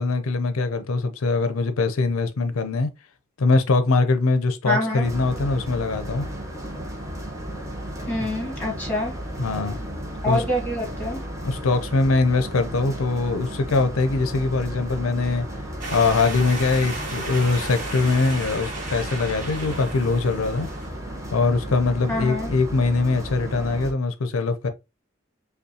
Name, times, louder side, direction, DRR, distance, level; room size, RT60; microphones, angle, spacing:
voice 1, 0.0-2.9 3.4-6.2 9.4-9.8 10.3-10.4 11.4-15.5 15.9-20.7 21.3-24.7, left 3 dB, 85° left, 0.6 m, -22 dB
voice 2, 4.6-5.1 8.1-9.1 10.2-11.2 22.1-22.5, left 1 dB, 10° left, 1.6 m, -26 dB
sound 1, 5.0-23.9, equal, 15° right, 0.8 m, -34 dB
sound 2, 15.8-20.9, right 2 dB, 40° right, 1.4 m, -34 dB
5.3 x 2.3 x 2.7 m
head